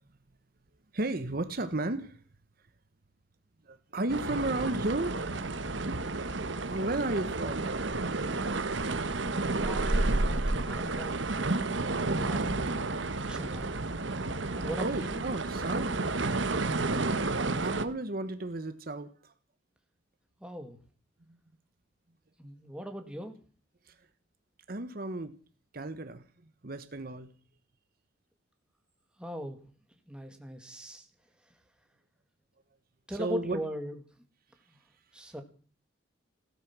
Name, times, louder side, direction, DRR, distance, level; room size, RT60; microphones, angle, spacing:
voice 1, 0.9-2.2 3.6-5.4 5.8-5.9 6.7-8.0 13.3-13.6 14.8-16.0 17.6-19.3 21.3-21.4 23.8-24.1 24.7-25.3 25.7-27.3 33.1-33.6, right 2 dB, 50° right, 10 dB, 1.1 m, -34 dB
sound 1, 4.1-17.8, right 2 dB, 70° right, 1.2 m, -31 dB
voice 2, 9.6-10.0 10.5-11.2 12.0-12.6 13.3-13.7 14.6-15.2 20.4-20.8 22.4-23.4 29.2-29.6 30.1-31.0 33.1-33.9 35.1-35.4, equal, 5° right, 5 dB, 2.1 m, -39 dB
16.5 x 13.0 x 6.1 m, 0.41 s
head